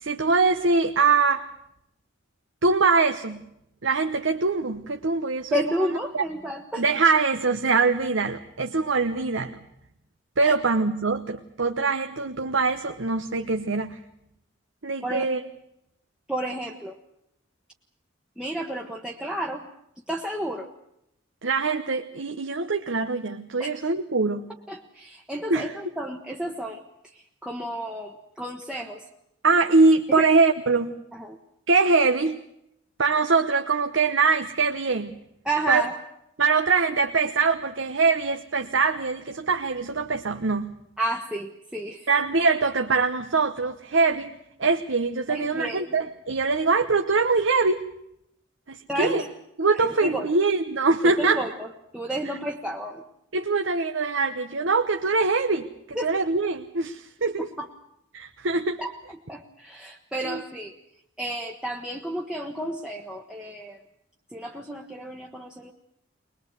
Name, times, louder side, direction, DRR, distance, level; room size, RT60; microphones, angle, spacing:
voice 1, 0.0-1.5 2.6-3.4 3.8-5.6 6.1-6.2 6.8-9.6 10.4-14.0 14.8-15.4 21.4-24.5 25.5-25.8 29.4-30.9 31.7-32.4 33.0-35.2 35.7-35.8 36.4-40.8 42.1-44.3 44.6-47.8 48.7-49.2 49.6-51.4 53.3-57.5 58.1-58.8 60.2-60.4, right 4 dB, 80° right, 6 dB, 1.0 m, -23 dB
voice 2, 5.5-6.8 10.4-10.6 15.0-15.3 16.3-17.0 18.4-19.6 20.1-20.7 23.6-23.8 24.7-26.8 27.1-29.0 30.1-30.3 31.1-31.4 35.4-35.9 41.0-42.1 45.3-45.8 48.9-49.3 49.8-50.3 51.0-53.0 55.9-56.1 57.4-57.7 58.8-60.7 61.2-63.8 64.3-65.7, right 1 dB, 5° right, 0 dB, 1.1 m, -31 dB
21.5 x 21.0 x 8.1 m, 0.79 s
head